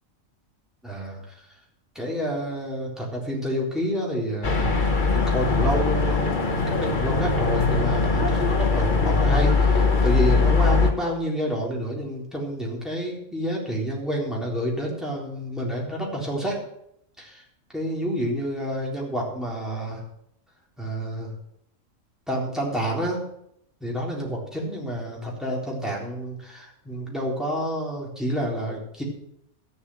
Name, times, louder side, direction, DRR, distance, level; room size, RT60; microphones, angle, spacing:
voice 1, 0.8-1.4 2.0-4.7 5.1-6.4 6.7-16.6 17.2-17.4 17.7-20.0 20.8-21.3 22.3-23.2 23.8-29.0, equal, ahead, -3 dB, 3.7 m, -29 dB
sound 1, 4.4-10.9, left 4 dB, 35° left, 1.5 m, -21 dB
13.0 x 7.4 x 7.8 m, 0.75 s
omnidirectional pair, 1.5 m